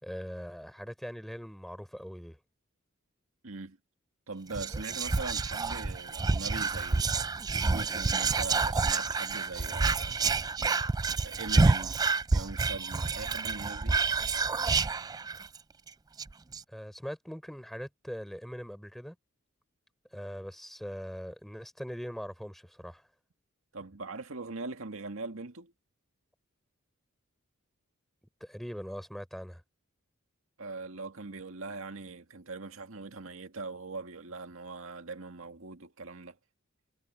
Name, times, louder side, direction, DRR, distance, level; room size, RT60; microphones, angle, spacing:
voice 1, 0.0-2.4 16.7-19.2 20.1-23.1 28.4-29.6, equal, ahead, 4.8 m, -41 dB
voice 2, 3.4-3.8 4.3-7.3 7.7-10.2 11.2-12.0 12.3-14.0 23.7-25.7 30.6-36.4, right 3 dB, 75° right, 2.0 m, -41 dB
Whispering, 4.5-15.6 15.9-16.0 16.2-16.6, right 4 dB, 20° right, 0.3 m, -28 dB
head